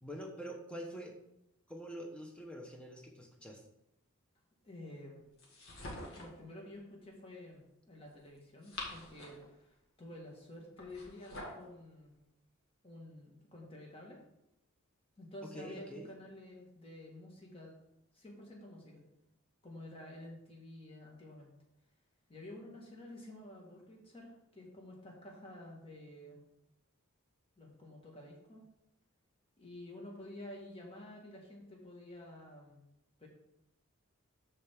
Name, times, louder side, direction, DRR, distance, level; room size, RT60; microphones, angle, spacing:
voice 1, 0.0-1.1 1.7-3.6 15.4-16.1, equal, 5° left, 2 dB, 0.9 m, -45 dB
voice 2, 4.6-5.2 6.2-12.1 12.8-14.2 15.2-17.7 18.1-19.0 19.6-21.5 22.3-26.4 27.6-28.6 29.6-32.8 33.2-33.3, left 1 dB, 25° left, -1 dB, 1.8 m, -50 dB
sound 1, 5.4-6.4 8.4-9.5 10.8-11.7, left 2 dB, 65° left, 2.1 m, -46 dB
12.5 x 4.4 x 3.7 m, 0.86 s
head